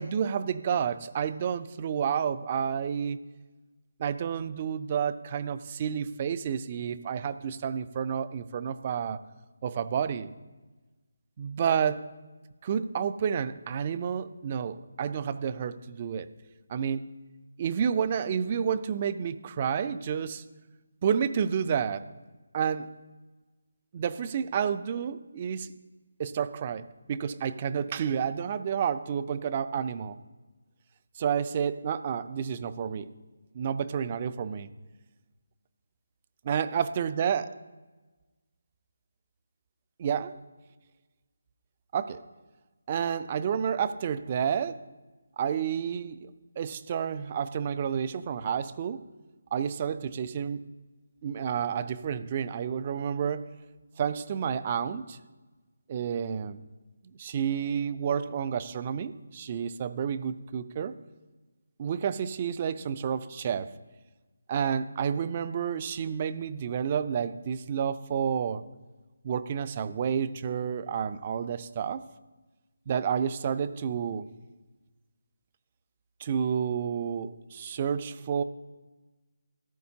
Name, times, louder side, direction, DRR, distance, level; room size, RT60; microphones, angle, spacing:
voice 1, 0.0-3.2 4.0-9.2 9.6-10.3 11.4-12.1 12.6-16.3 16.7-17.0 17.6-20.4 21.0-22.0 22.5-22.9 23.9-25.7 26.2-30.2 31.2-33.1 33.5-34.7 36.4-37.5 40.0-40.3 41.9-42.3 42.9-44.8 45.4-49.0 49.5-50.6 51.2-53.5 54.0-55.2 55.9-56.6 57.2-61.0 61.8-63.7 64.5-68.6 69.2-72.0 72.9-74.3 76.2-78.4, right 7 dB, 30° right, 14 dB, 0.5 m, -30 dB
14.0 x 11.5 x 2.8 m, 1.2 s
figure-of-eight pair, 160°, 0 cm